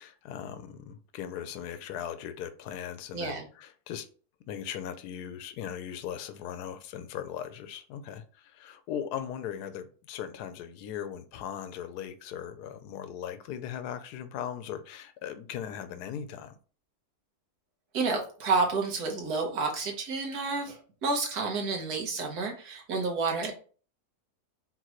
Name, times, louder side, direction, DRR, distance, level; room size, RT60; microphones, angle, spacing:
voice 1, 0.0-4.1 4.5-16.5, left 9 dB, 90° left, 1.1 m, -39 dB
voice 2, 3.1-3.4 17.9-23.5, right 4 dB, 80° right, 1.7 m, -30 dB
4.6 x 3.7 x 3.0 m
omnidirectional pair, 1.6 m